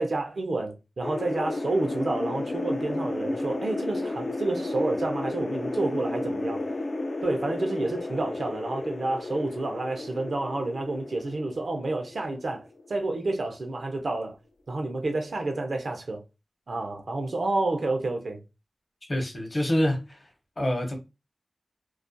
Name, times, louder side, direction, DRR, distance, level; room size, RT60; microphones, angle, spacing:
voice 1, 0.0-6.6 7.2-12.6 12.9-14.4 14.7-16.2 16.7-18.4, right 2 dB, 75° right, 0.5 m, -29 dB
sound 1, 1.0-13.4, left 2 dB, 60° left, 0.3 m, -33 dB
voice 2, 19.1-20.2 20.6-21.0, equal, 40° left, 0.8 m, -26 dB
2.3 x 2.1 x 2.5 m
wide cardioid pair, 85°, 0 cm